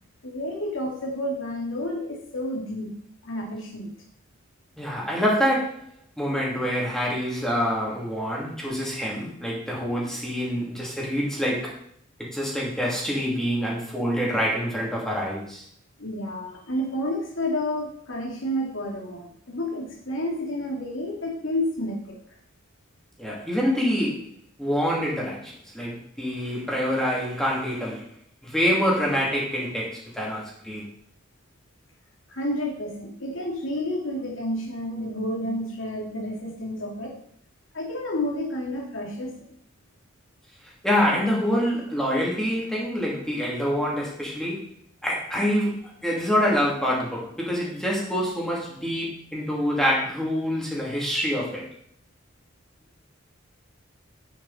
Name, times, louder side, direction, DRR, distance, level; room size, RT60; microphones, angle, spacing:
voice 1, 0.2-2.9 3.2-3.9 16.0-22.2 32.3-37.1 37.7-39.5, left 1 dB, 85° left, 0 dB, 2.4 m, -30 dB
voice 2, 4.8-5.8 6.2-11.8 12.2-15.6 23.2-24.3 24.6-28.0 28.4-30.9 40.8-44.7 45.0-51.6, equal, 5° left, -4 dB, 2.8 m, -26 dB
9.4 x 7.3 x 4.2 m, 0.64 s
head